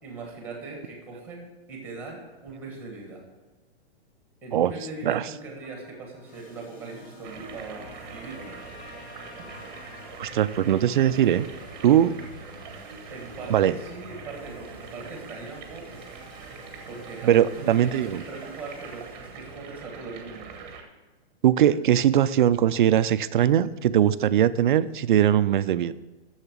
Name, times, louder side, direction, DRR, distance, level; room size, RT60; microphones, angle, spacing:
voice 1, 0.0-3.2 4.4-8.5 13.1-16.0 16.9-20.5, right 3 dB, 5° right, 0 dB, 1.6 m, -40 dB
Trumpet, 5.6-10.1, left 4 dB, 80° left, 2.5 m, -50 dB
sound 1, 6.3-19.8, left 2 dB, 35° left, 2.3 m, -49 dB
sound 2, 7.2-20.8, right 5 dB, 25° right, 1.1 m, -43 dB
voice 2, 10.2-11.5 11.8-12.2 13.5-13.8 17.2-18.2 21.4-25.9, right 10 dB, 50° right, 15 dB, 0.4 m, -21 dB
7.2 x 6.7 x 7.3 m, 1.2 s
hypercardioid pair, 170°, 32 cm